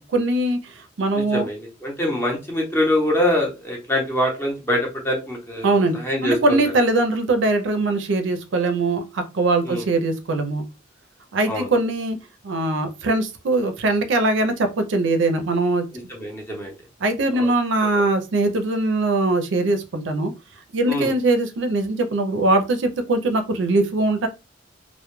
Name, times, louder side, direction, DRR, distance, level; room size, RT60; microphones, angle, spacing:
voice 1, 0.0-1.5 5.6-10.6 11.3-12.2 12.4-15.8 17.0-20.3 20.7-24.3, right 2 dB, 65° right, 6 dB, 0.4 m, -21 dB
voice 2, 1.1-6.7 9.6-9.8 11.5-11.7 16.1-16.8 17.4-17.5 20.9-21.1, left 1 dB, 10° left, -1 dB, 0.7 m, -24 dB
2.2 x 2.1 x 3.0 m, 0.27 s
head